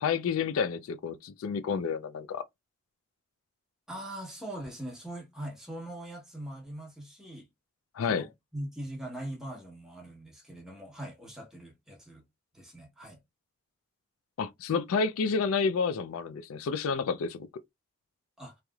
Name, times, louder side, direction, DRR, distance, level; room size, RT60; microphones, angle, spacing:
voice 1, 0.0-2.4 8.0-8.3 14.4-17.5, left 5 dB, 80° left, 0.4 m, -30 dB
voice 2, 3.9-7.5 8.1-12.2 12.5-13.2 18.4-18.5, right 1 dB, ahead, 0.9 m, -41 dB
3.1 x 2.9 x 2.3 m
head